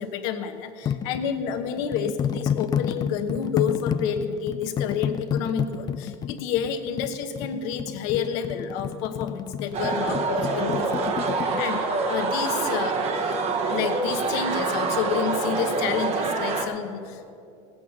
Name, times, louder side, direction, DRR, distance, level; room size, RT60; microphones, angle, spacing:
voice 1, 0.0-17.3, left 7 dB, 65° left, 7 dB, 1.2 m, -30 dB
sound 1, 0.9-11.6, left 8 dB, 25° left, 0.3 m, -30 dB
sound 2, 9.7-16.6, right 3 dB, 40° right, 1.2 m, -26 dB
17.5 x 8.5 x 5.7 m, 2.7 s
supercardioid pair, 130°, 15 cm